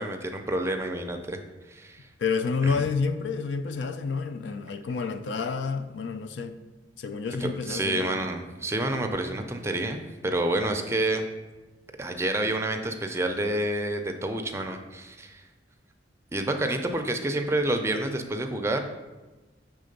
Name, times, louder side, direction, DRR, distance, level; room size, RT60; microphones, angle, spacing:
voice 1, 0.0-1.4 1.7-2.1 2.6-2.8 7.4-11.2 12.0-15.4 16.3-18.8, right 1 dB, 15° right, 0.4 m, -28 dB
voice 2, 2.2-6.6 7.0-8.2, left 5 dB, 75° left, 0.4 m, -29 dB
6.6 x 3.4 x 5.2 m
head